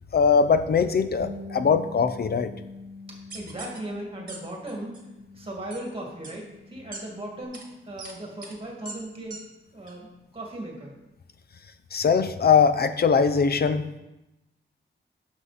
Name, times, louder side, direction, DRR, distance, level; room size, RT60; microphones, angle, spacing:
voice 1, 0.1-2.5 11.9-13.8, left 6 dB, 55° left, 11 dB, 0.6 m, -21 dB
Bass guitar, 1.2-7.4, left 2 dB, 85° right, 0.9 m, -44 dB
voice 2, 3.1-5.0 5.3-9.4 9.7-11.0, right 1 dB, 30° right, -1 dB, 2.2 m, -37 dB
sound 1, 3.3-3.8 4.3-4.4 4.7-5.0 5.7-5.8 6.2-6.3 6.9-7.0 7.5-7.6 8.0-8.1 8.4-8.5 8.8-8.9 9.3-9.4 9.9-10.0, right 3 dB, 45° right, 1.5 m, -40 dB
11.0 x 6.4 x 4.1 m, 0.95 s
wide cardioid pair, 150°, 20 cm